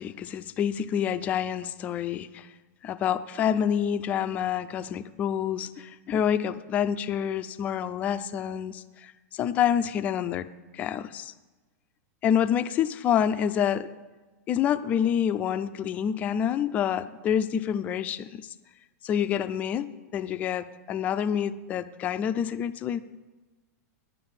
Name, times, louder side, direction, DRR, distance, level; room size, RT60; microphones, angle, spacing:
voice 1, 0.0-2.5 2.8-10.5 10.7-11.3 12.2-13.9 14.5-18.5 19.0-23.0, left 9 dB, 15° left, 12 dB, 0.3 m, -27 dB
10.0 x 7.8 x 7.4 m, 1.2 s
supercardioid pair, 170°, 9 cm